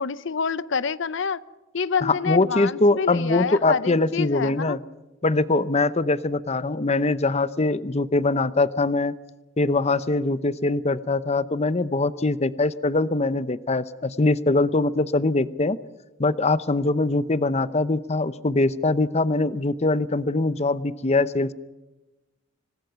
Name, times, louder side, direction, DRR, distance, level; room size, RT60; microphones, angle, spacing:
voice 1, 0.0-1.4 1.7-4.8, left 5 dB, 65° left, 17 dB, 0.7 m, -27 dB
voice 2, 2.0-4.8 5.2-9.2 9.6-15.8 16.2-21.5, left 2 dB, 30° left, 15 dB, 0.8 m, -22 dB
26.0 x 19.5 x 5.8 m, 1.1 s
head